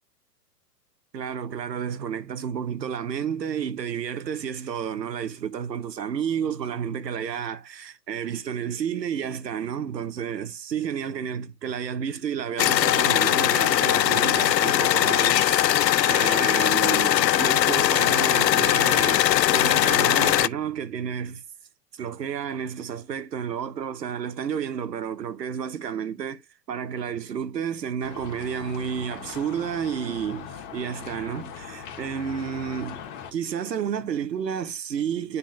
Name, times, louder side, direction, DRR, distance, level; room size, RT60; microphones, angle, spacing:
voice 1, 1.1-19.3 19.5-21.4 21.9-26.4 26.7-33.0 33.3-35.4, right 8 dB, 80° right, 1.1 m, -31 dB
sound 1, 12.6-20.5, left 13 dB, 85° left, 0.5 m, -20 dB
sound 2, 28.0-33.3, left 7 dB, 45° left, 1.8 m, -40 dB
10.0 x 4.1 x 2.6 m
hypercardioid pair, 120°, 49 cm